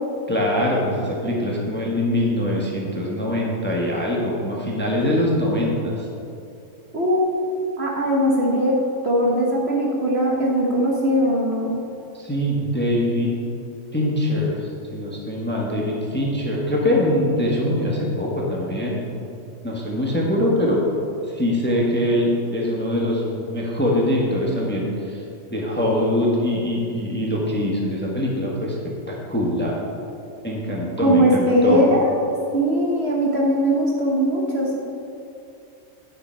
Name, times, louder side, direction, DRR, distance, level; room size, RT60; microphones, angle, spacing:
voice 1, 0.3-6.1 12.1-13.3 13.9-19.0 19.6-20.8 21.3-28.7 29.1-29.8 30.4-31.8, left 1 dB, 10° left, -3 dB, 1.1 m, -23 dB
voice 2, 6.9-7.3 7.8-8.7 9.0-11.7 31.0-32.1 32.5-34.8, equal, 45° right, -2 dB, 1.2 m, -20 dB
9.4 x 7.0 x 4.5 m, 2.6 s
omnidirectional pair, 1.6 m